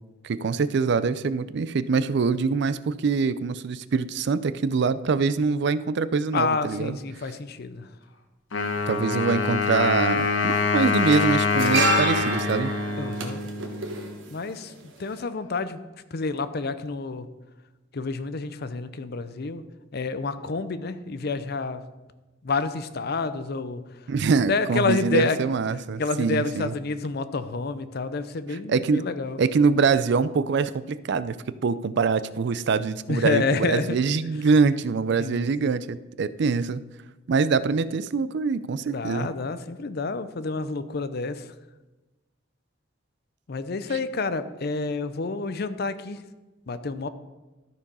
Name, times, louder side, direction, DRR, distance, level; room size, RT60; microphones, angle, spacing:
voice 1, 0.2-7.0 8.9-12.8 24.1-26.7 28.5-29.0 29.4-31.4 31.6-36.8 37.3-39.3, right 5 dB, 60° right, 15 dB, 0.4 m, -24 dB
voice 2, 6.3-7.9 13.0-13.4 14.3-15.8 16.1-17.3 17.9-19.6 19.9-21.8 22.4-23.8 24.5-25.4 26.0-29.4 33.1-34.0 35.2-35.7 38.9-41.5 43.5-46.2 46.7-47.1, left 3 dB, 55° left, 12 dB, 0.6 m, -29 dB
Wind instrument woodwind instrument, 8.5-14.2, left 4 dB, 85° left, 1.1 m, -25 dB
sound 1, 8.6-8.7 9.9-10.2 10.5-14.8 15.0-15.2, right 3 dB, 80° right, 1.5 m, -29 dB
13.0 x 4.7 x 5.5 m, 1.1 s
head